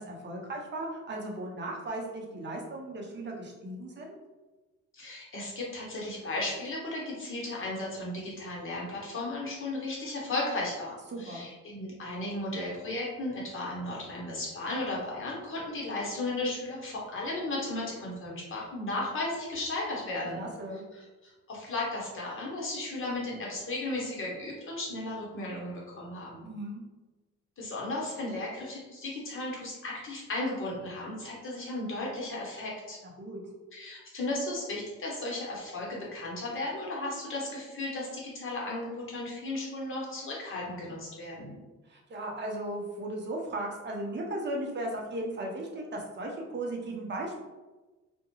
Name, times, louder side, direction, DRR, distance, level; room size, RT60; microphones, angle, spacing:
voice 1, 0.0-4.1 11.1-11.4 20.4-20.8 26.4-26.8 33.2-33.4 41.9-47.4, right 1 dB, 35° right, 0 dB, 0.7 m, -36 dB
voice 2, 4.9-20.4 20.9-26.5 27.6-33.0 33.7-41.6, left 2 dB, 45° left, -4 dB, 1.1 m, -35 dB
2.4 x 2.2 x 3.0 m, 1.2 s
cardioid pair, 90°, 30 cm